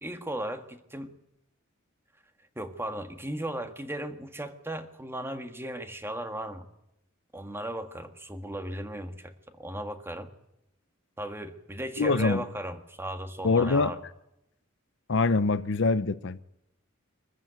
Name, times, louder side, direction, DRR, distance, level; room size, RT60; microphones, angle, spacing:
voice 1, 0.0-1.1 2.5-6.7 7.3-10.3 11.2-14.0, right 1 dB, 10° right, 1.7 m, -36 dB
voice 2, 12.0-12.4 13.4-13.9 15.1-16.4, left 3 dB, 65° left, 0.7 m, -24 dB
24.0 x 15.0 x 9.0 m
head